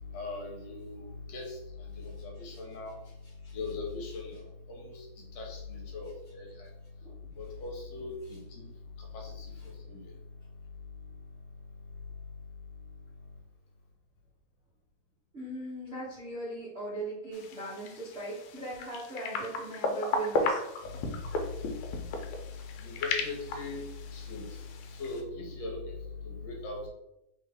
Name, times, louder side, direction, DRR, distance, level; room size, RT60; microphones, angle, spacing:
voice 1, 0.1-1.6 2.0-2.9 3.5-4.3 4.7-5.0 5.4-6.7 7.4-8.4 9.1-9.5 9.9-10.0 22.8-23.8 24.1-24.4 25.0-25.8 26.4-26.8, left 3 dB, 70° left, 0 dB, 1.9 m, -39 dB
voice 2, 15.3-20.6, right 2 dB, 65° right, -9 dB, 0.6 m, -39 dB
sound 1, 17.3-25.2, left 3 dB, 90° left, 2.0 m, -35 dB
4.1 x 3.4 x 3.5 m, 0.86 s
omnidirectional pair, 3.4 m